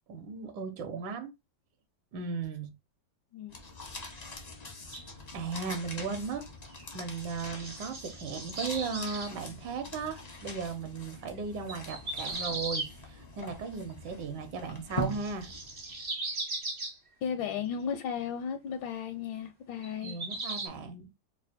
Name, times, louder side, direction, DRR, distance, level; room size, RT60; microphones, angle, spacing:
voice 1, 0.1-1.3 2.1-2.7 5.3-6.4 6.9-15.5 20.0-21.1, right 5 dB, 70° right, 1.3 m, -36 dB
sound 1, 3.5-16.1, left 2 dB, 45° left, 0.5 m, -43 dB
sound 2, 4.9-5.1 6.7-6.9 7.1-9.3 11.7-12.9 15.1-16.9 19.8-20.7, right 2 dB, 50° right, 0.5 m, -38 dB
voice 2, 17.2-20.2, left 7 dB, 80° left, 1.3 m, -35 dB
3.4 x 2.1 x 4.1 m
omnidirectional pair, 2.0 m